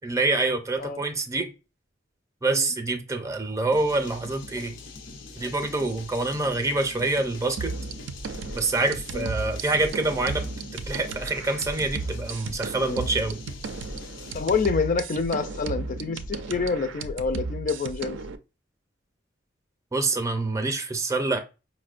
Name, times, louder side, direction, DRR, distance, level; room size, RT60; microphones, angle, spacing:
voice 1, 0.0-1.5 2.4-4.8 5.4-7.7 8.5-10.4 10.7-13.4 19.9-21.4, right 2 dB, 15° right, 0.5 m, -26 dB
sound 1, 3.7-14.9, left 4 dB, 90° left, 0.6 m, -43 dB
sound 2, 7.6-18.4, right 3 dB, 70° right, 0.4 m, -35 dB
voice 2, 14.3-18.2, left 4 dB, 45° left, 0.4 m, -27 dB
5.0 x 2.1 x 2.4 m
head